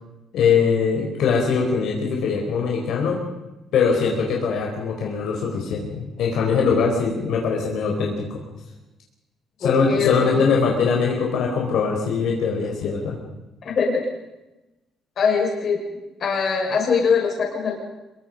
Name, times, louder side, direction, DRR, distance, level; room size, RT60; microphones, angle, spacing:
voice 1, 0.3-3.2 3.7-8.4 9.6-13.2, left 5 dB, 65° left, -1 dB, 4.5 m, -22 dB
voice 2, 9.6-10.4 13.6-14.1 15.2-15.8 16.2-17.7, left 5 dB, 40° left, 0 dB, 6.3 m, -22 dB
26.0 x 22.5 x 5.4 m, 1.0 s
cardioid pair, 165°, 0 cm